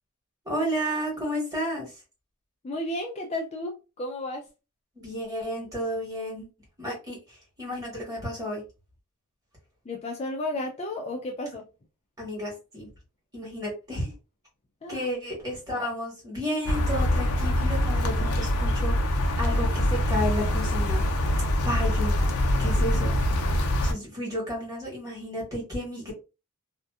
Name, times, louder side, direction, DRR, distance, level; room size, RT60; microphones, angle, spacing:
voice 1, 0.4-1.9 5.0-6.5 6.8-8.6 12.2-12.9 13.3-14.1 14.9-19.1 19.4-21.0 21.6-22.1 22.6-23.1 23.8-26.1, equal, 15° right, 1.3 m, -32 dB
voice 2, 2.6-4.4 9.9-11.6 14.8-15.1, left 1 dB, 30° left, 0.3 m, -33 dB
sound 1, 16.7-23.9, left 1 dB, 85° left, 0.5 m, -24 dB
2.6 x 2.2 x 2.3 m
head